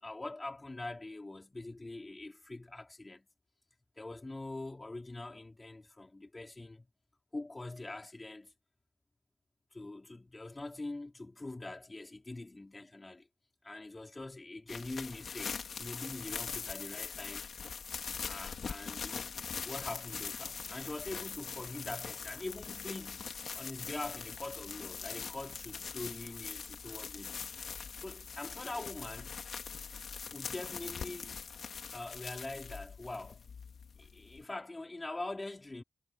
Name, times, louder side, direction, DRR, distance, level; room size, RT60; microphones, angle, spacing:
voice 1, 0.0-3.3 4.0-6.9 7.3-8.5 9.7-13.3 13.6-17.4 18.2-19.3 19.6-23.3 23.5-27.4 28.0-29.4 30.3-31.3 31.9-33.4 34.0-35.8, left 2 dB, 25° left, 4.7 m, -43 dB
sound 1, 14.7-34.4, left 6 dB, 65° left, 2.9 m, -42 dB
cardioid pair, 65°, 0 cm